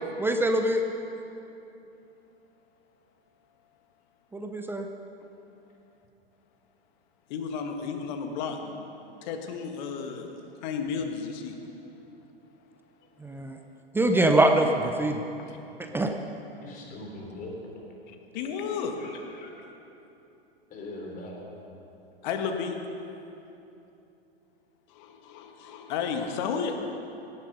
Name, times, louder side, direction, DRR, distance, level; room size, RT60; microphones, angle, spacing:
voice 1, 0.2-0.8 4.3-4.9 13.2-13.6 13.9-15.2 15.9-16.1, right 1 dB, 5° right, 4 dB, 0.6 m, -23 dB
voice 2, 7.3-8.9 9.2-11.6 15.5-15.6 18.1-19.5 22.2-22.7 24.9-26.7, left 6 dB, 45° left, 4 dB, 1.7 m, -33 dB
voice 3, 16.6-17.6 18.4-19.1 19.4-19.5 20.7-21.6, left 2 dB, 25° left, -1 dB, 3.7 m, -41 dB
17.5 x 10.5 x 5.4 m, 2.9 s
figure-of-eight pair, 105°, 31 cm